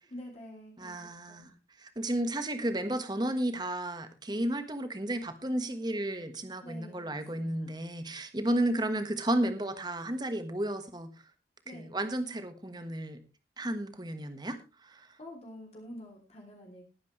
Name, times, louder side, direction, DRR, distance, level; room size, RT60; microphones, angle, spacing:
voice 1, 0.0-1.4 6.6-7.7 11.6-11.9 15.2-16.9, left 1 dB, 35° left, 0 dB, 3.1 m, -47 dB
voice 2, 0.8-1.5 1.8-11.1 11.7-13.2 13.6-15.1, right 1 dB, 25° right, 9 dB, 1.4 m, -33 dB
19.0 x 9.5 x 3.2 m, 0.29 s
head